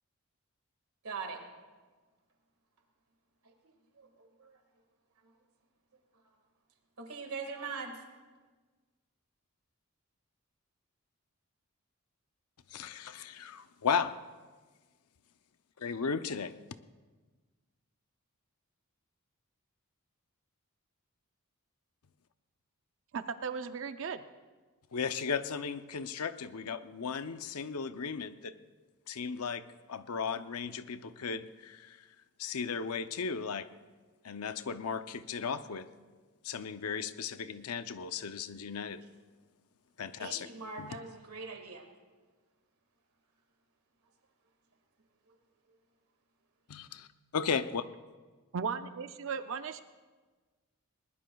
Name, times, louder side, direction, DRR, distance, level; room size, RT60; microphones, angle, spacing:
voice 1, 1.0-1.4 3.4-3.5 4.0-4.6 7.0-8.0 40.2-41.9 45.3-45.4, right 4 dB, 80° right, 3 dB, 1.9 m, -42 dB
voice 2, 12.7-14.2 15.8-16.5 24.9-28.5 29.1-32.0 32.4-33.7 34.2-35.9 36.4-39.0 40.0-40.5 40.8-41.0 46.7-47.1 47.3-47.8, left 6 dB, 85° left, 11 dB, 0.6 m, -35 dB
voice 3, 23.1-24.2 48.5-49.8, right 5 dB, 60° right, 9 dB, 0.5 m, -36 dB
20.5 x 19.5 x 2.3 m, 1.3 s
head